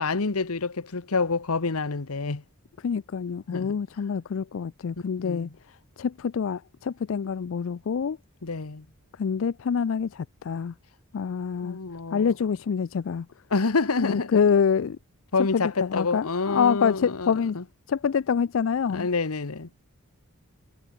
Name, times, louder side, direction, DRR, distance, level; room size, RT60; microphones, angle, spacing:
voice 1, 0.0-2.4 3.5-3.7 5.2-5.5 8.4-8.8 11.6-12.3 13.5-14.3 15.3-17.6 18.9-19.7, left 4 dB, 80° left, 1.1 m, -27 dB
voice 2, 2.8-5.5 6.0-8.2 9.2-10.7 11.1-11.8 12.1-13.3 14.0-15.0 15.5-17.6 17.9-19.1, left 6 dB, 60° left, 0.4 m, -26 dB
head